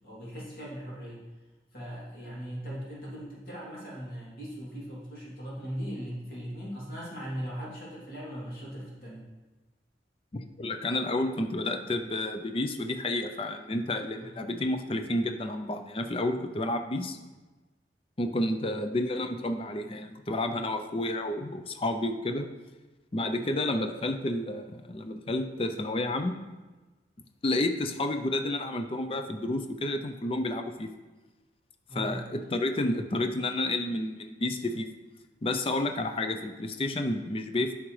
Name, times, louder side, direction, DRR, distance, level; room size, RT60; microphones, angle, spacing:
voice 1, 0.0-1.2 1.7-9.2 14.2-14.3 31.9-32.2, equal, 55° left, -6 dB, 2.7 m, -39 dB
voice 2, 10.3-17.2 18.2-22.5 23.1-26.4 27.4-30.9 32.0-34.9 35.4-37.7, left 1 dB, 30° left, 7 dB, 0.5 m, -30 dB
9.7 x 5.8 x 3.2 m, 1.2 s
head